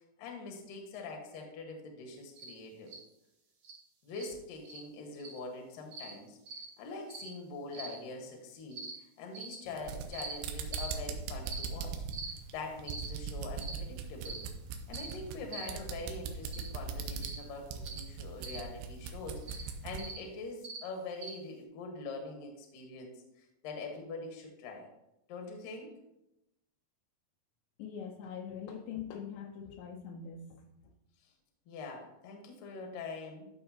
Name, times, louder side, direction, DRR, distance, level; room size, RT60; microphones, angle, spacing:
voice 1, 0.2-2.9 4.0-6.4 6.8-8.8 9.2-12.0 12.5-14.4 14.9-24.9 25.3-25.9 31.7-33.5, left 3 dB, 60° left, 2 dB, 2.6 m, -44 dB
sound 1, 2.4-2.5 2.9-3.0 3.6-3.8 4.1-4.3 4.6-4.8 5.2-5.4 5.9-6.1 6.5-6.6 7.1-7.3 7.7-7.9 8.7-8.9 9.3-9.5 10.1-10.3 10.7-10.9 11.5-11.7 12.1-12.3 12.9-13.1 13.6-13.8 14.2-14.4 14.9-15.1 15.5-15.7 16.5-16.7 17.2-17.4 17.8-18.0 18.4-18.6 19.4-19.6 20.0-20.2 20.6-20.8 21.2-21.3, right 4 dB, 60° right, 2.0 m, -43 dB
sound 2, 9.7-20.1, right 6 dB, 85° right, 3.0 m, -40 dB
voice 2, 27.8-30.9, left 7 dB, 80° left, 2 dB, 2.9 m, -43 dB
12.0 x 6.5 x 2.8 m, 0.88 s
omnidirectional pair, 5.2 m